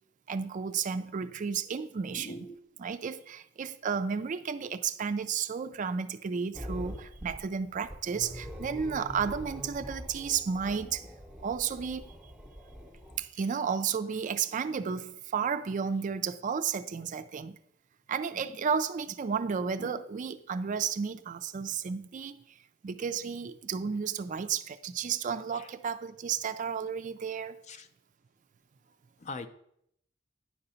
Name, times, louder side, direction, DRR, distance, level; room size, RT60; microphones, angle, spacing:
voice 1, 0.3-2.4 2.8-11.1 11.4-12.1 13.2-17.6 18.1-22.4 22.8-27.6, right 6 dB, 40° right, 0.4 m, -32 dB
voice 2, 2.1-2.6 19.8-20.0 25.5-25.7 27.7-27.9 29.2-29.5, left 2 dB, 35° left, 0.5 m, -41 dB
sound 1, 6.5-13.3, equal, 5° right, 0.8 m, -44 dB
9.9 x 3.9 x 5.6 m
head